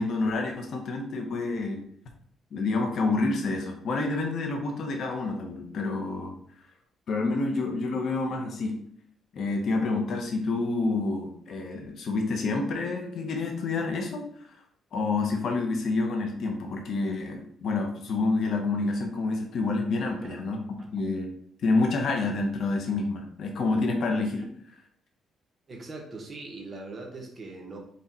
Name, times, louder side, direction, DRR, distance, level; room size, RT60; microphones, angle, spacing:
voice 1, 0.0-1.8 2.5-6.3 7.1-8.7 9.3-14.3 14.9-21.3 21.6-24.4, left 3 dB, 65° left, 3 dB, 0.8 m, -28 dB
voice 2, 25.7-27.8, right 3 dB, 35° right, 0 dB, 1.2 m, -41 dB
4.1 x 2.4 x 4.1 m, 0.64 s
cardioid pair, 90°, 0 cm